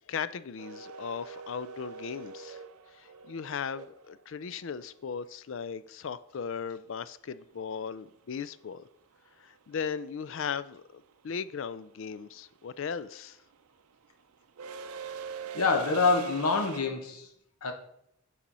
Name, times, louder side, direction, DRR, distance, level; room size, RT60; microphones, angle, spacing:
voice 1, 0.1-2.6 3.0-8.8 9.4-13.4, left 6 dB, 60° left, 0.4 m, -37 dB
sound 1, 0.6-4.6 7.0-7.1 8.4-8.7 9.0-16.8, right 5 dB, 85° right, 0.5 m, -44 dB
voice 2, 15.5-17.3 17.6-17.7, left 4 dB, 90° left, 1.0 m, -26 dB
8.7 x 4.3 x 5.4 m
head